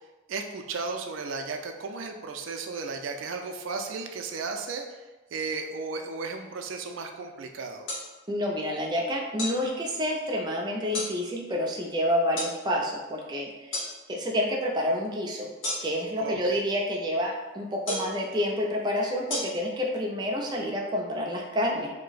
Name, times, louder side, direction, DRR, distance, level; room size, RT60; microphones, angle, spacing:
voice 1, 0.3-4.8 5.3-7.9 16.2-16.6, right 4 dB, 90° right, 5 dB, 0.4 m, -34 dB
sound 1, 7.9-8.0 9.4-9.6 10.9-11.1 12.4-12.5 13.7-13.9 15.6-16.1 17.9-18.2 19.3-19.4, left 1 dB, 80° left, 0.8 m, -31 dB
voice 2, 8.3-13.8 14.1-15.5 15.8-21.9, left 1 dB, 20° right, -1 dB, 0.4 m, -28 dB
2.7 x 2.1 x 3.9 m, 1.2 s
head